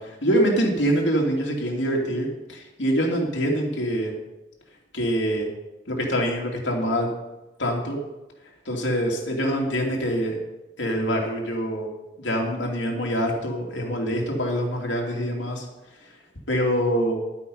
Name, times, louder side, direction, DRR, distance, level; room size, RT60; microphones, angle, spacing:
voice 1, 0.0-4.1 4.9-5.5 5.9-7.1 7.6-8.0 8.7-10.4 10.8-11.9 12.2-15.6 16.5-17.2, equal, 85° left, -1 dB, 2.6 m, -25 dB
11.5 x 8.5 x 5.5 m, 1.0 s
head